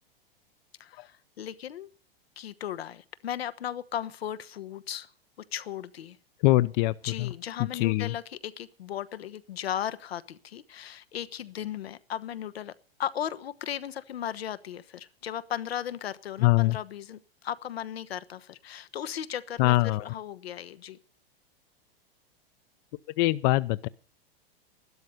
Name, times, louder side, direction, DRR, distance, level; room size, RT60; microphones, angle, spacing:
voice 1, 0.8-1.9 2.4-5.1 5.5-6.2 7.0-12.7 13.0-21.0, left 10 dB, 85° left, 1.2 m, -36 dB
voice 2, 6.4-7.3 7.7-8.1 16.4-16.8 19.6-20.1 23.2-23.9, left 18 dB, 50° left, 0.7 m, -23 dB
12.5 x 12.0 x 6.7 m
hypercardioid pair, 115°, 30 cm